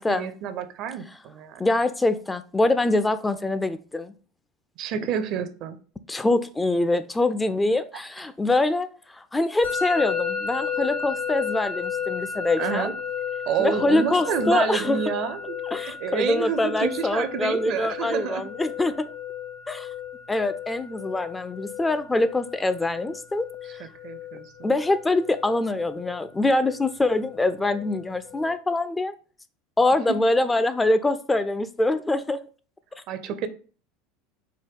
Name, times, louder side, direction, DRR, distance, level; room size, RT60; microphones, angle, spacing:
voice 1, 0.0-1.7 4.8-5.8 12.6-12.9 13.5-15.4 15.8-18.5 23.8-24.7 30.1-30.2 33.1-33.5, right 8 dB, 50° right, 0.5 m, -29 dB
voice 2, 1.6-4.1 6.1-12.9 13.6-15.0 15.7-19.1 19.7-19.9 20.3-23.5 24.6-29.1 29.8-32.4, left 2 dB, 15° left, 0.3 m, -24 dB
Musical instrument, 9.6-28.5, left 7 dB, 75° left, 0.8 m, -34 dB
4.5 x 2.2 x 3.5 m
hypercardioid pair, 75°, 0 cm